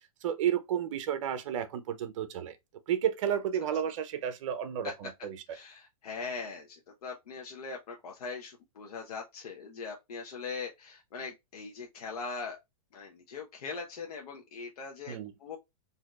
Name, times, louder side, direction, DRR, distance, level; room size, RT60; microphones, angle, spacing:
voice 1, 0.2-2.6 2.9-5.4 15.1-15.3, right 9 dB, 55° right, 0.8 m, -32 dB
voice 2, 5.5-12.6 12.9-15.6, left 4 dB, 85° left, 1.0 m, -41 dB
4.2 x 2.8 x 2.4 m
hypercardioid pair, 155°, 19 cm